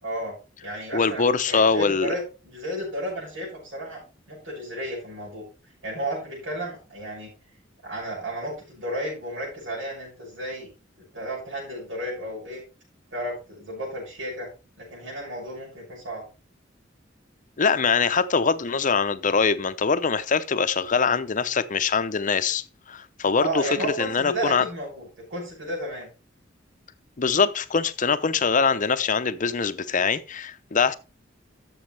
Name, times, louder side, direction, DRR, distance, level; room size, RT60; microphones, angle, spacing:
voice 1, 0.0-0.4 0.6-4.0 4.3-5.5 5.8-7.3 7.8-10.7 11.1-12.6 13.1-14.5 14.8-16.2 23.4-26.1, right 1 dB, 80° right, 6.3 m, -33 dB
voice 2, 0.9-2.1 17.6-24.6 27.2-30.9, left 5 dB, 40° left, 0.7 m, -23 dB
13.0 x 6.9 x 3.4 m
head